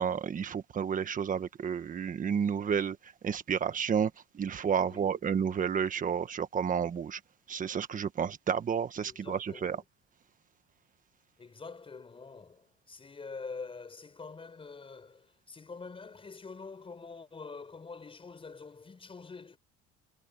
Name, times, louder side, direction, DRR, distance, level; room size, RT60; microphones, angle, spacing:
voice 1, 0.0-3.0 3.2-7.2 7.5-9.8, right 7 dB, 25° right, 1.4 m, -31 dB
voice 2, 4.8-5.2 9.0-9.9 11.4-19.6, left 4 dB, 20° left, 6.0 m, -46 dB
cardioid pair, 145°, 29 cm